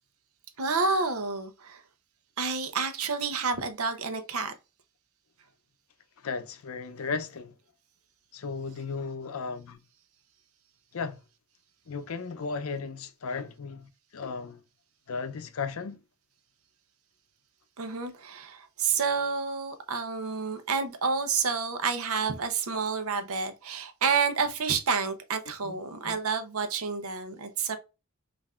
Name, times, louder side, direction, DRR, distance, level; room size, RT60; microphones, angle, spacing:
voice 1, 0.6-1.8 2.4-4.5 17.8-27.8, right 5 dB, 80° right, 0.7 m, -29 dB
voice 2, 6.2-7.5 8.3-9.8 10.9-11.2 11.9-14.6 15.1-16.0 25.6-25.8 26.1-26.2, left 4 dB, 70° left, 0.5 m, -35 dB
5.4 x 2.6 x 2.3 m
head